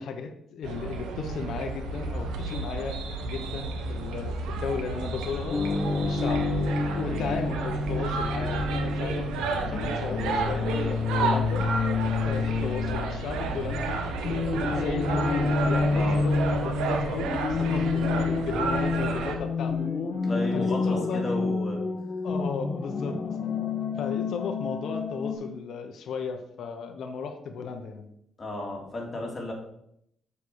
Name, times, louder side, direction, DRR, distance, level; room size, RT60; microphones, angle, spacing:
voice 1, 0.0-5.6 6.0-6.4 6.9-11.7 12.2-14.1 14.5-19.9 20.5-21.5 22.2-23.2 24.0-28.1, left 5 dB, 70° left, 5 dB, 1.0 m, -35 dB
sound 1, 0.6-19.4, right 4 dB, 90° right, 1.1 m, -31 dB
sound 2, 5.5-25.3, left 4 dB, 45° left, 1.3 m, -29 dB
voice 2, 7.1-7.4 15.8-16.2 20.2-21.8 23.0-23.2 28.4-29.5, left 2 dB, 30° left, -1 dB, 2.9 m, -34 dB
6.9 x 5.6 x 4.8 m, 0.74 s
cardioid pair, 90°, 0 cm